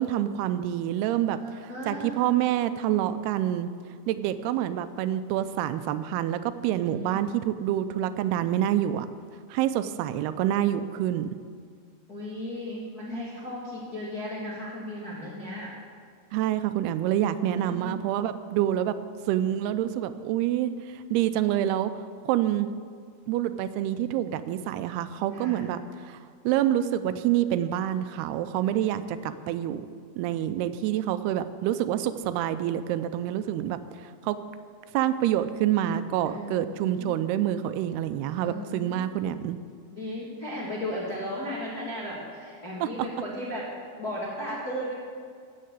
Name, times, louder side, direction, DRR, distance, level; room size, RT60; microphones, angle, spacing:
voice 1, 0.0-3.7 4.1-9.1 9.5-11.3 16.3-18.9 19.3-21.9 22.3-22.7 23.3-25.8 26.0-26.2 26.4-29.8 30.2-33.8 34.2-34.4 34.9-39.6 42.8-42.9, right 12 dB, 85° right, 12 dB, 2.6 m, -27 dB
voice 2, 1.3-2.2 6.8-7.2 12.1-15.7 17.5-18.0 25.3-25.7 28.9-29.4 36.2-37.1 38.4-39.0 39.9-43.7 44.0-44.9, left 1 dB, 35° left, -7 dB, 1.8 m, -36 dB
15.0 x 6.5 x 8.2 m, 2.1 s
omnidirectional pair, 4.5 m